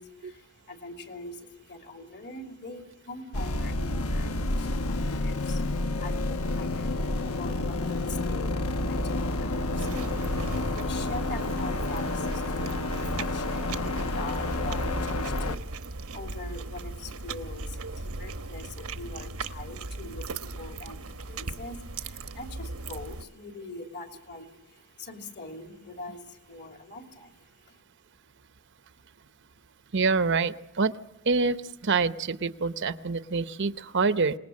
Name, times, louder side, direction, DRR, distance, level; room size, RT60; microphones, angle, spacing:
voice 1, 0.0-27.4 27.6-27.8, left 2 dB, 50° left, 4 dB, 3.0 m, -43 dB
sound 1, 3.3-15.6, left 2 dB, 80° left, 1.1 m, -29 dB
sound 2, 9.8-23.2, right 3 dB, 80° right, 1.1 m, -38 dB
voice 2, 29.9-30.9 31.3-31.6 31.8-34.4, right 4 dB, 55° right, 12 dB, 0.8 m, -26 dB
27.0 x 19.5 x 8.5 m, 0.91 s
head